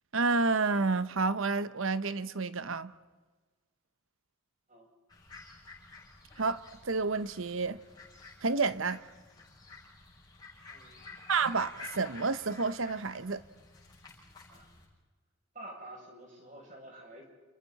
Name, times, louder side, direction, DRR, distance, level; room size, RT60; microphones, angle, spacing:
voice 1, 0.1-2.9 6.4-7.8 8.4-9.0 11.3-13.4, right 4 dB, 70° right, 0.9 m, -30 dB
sound 1, 5.1-14.8, left 3 dB, 20° left, 6.3 m, -51 dB
voice 2, 10.7-11.0 14.5-14.7 15.5-17.2, right 1 dB, 35° right, 7.4 m, -49 dB
29.0 x 29.0 x 4.2 m
head